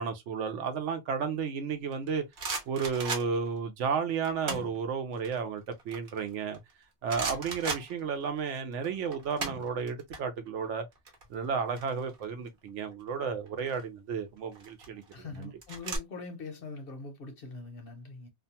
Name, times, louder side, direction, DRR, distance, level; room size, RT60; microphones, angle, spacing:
voice 1, 0.0-2.2 2.7-6.6 7.0-10.8 11.3-15.5, right 6 dB, 75° right, 1.0 m, -33 dB
sound 1, 1.9-3.6 4.2-4.8 5.2-6.7 7.1-8.5 8.7-10.2 10.5-10.7 10.9-12.5 13.5-13.8 14.5-16.0, right 3 dB, 50° right, 1.0 m, -37 dB
voice 2, 15.1-18.3, left 3 dB, 60° left, 0.7 m, -42 dB
2.5 x 2.2 x 2.7 m
omnidirectional pair, 1.3 m